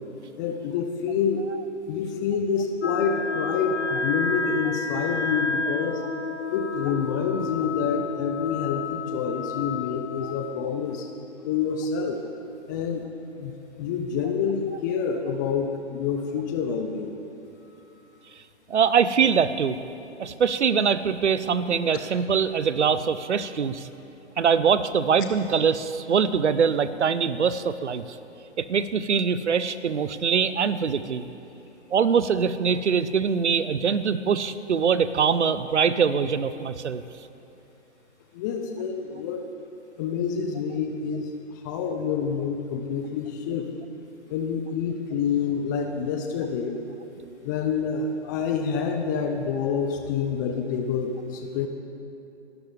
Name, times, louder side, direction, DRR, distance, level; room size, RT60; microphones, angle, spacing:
voice 1, 0.4-1.4 1.9-6.0 6.5-11.1 11.4-12.2 12.7-13.0 13.4-17.2 38.3-39.5 40.0-41.3 41.6-43.7 44.3-46.8 47.4-51.7, left 6 dB, 15° left, 5 dB, 0.5 m, -27 dB
sound 1, 2.8-12.3, left 4 dB, 70° left, 0.8 m, -31 dB
voice 2, 18.7-19.8 20.2-23.9 24.4-28.0 28.6-31.2 31.9-37.0, right 6 dB, 75° right, 14 dB, 0.9 m, -23 dB
27.5 x 12.5 x 3.3 m, 3.0 s
figure-of-eight pair, 135°, 35 cm